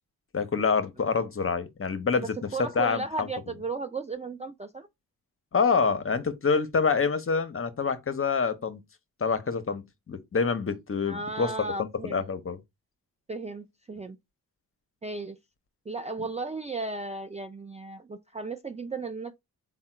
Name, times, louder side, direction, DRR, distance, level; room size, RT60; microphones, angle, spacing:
voice 1, 0.3-2.3 2.6-3.3 5.5-8.8 9.2-11.7 12.1-12.6, left 5 dB, 35° left, 0.7 m, -26 dB
voice 2, 2.2-4.9 11.0-12.2 13.3-14.2 15.0-15.4 15.9-19.4, right 3 dB, 20° right, 0.3 m, -35 dB
3.6 x 2.2 x 4.2 m
supercardioid pair, 45°, 39 cm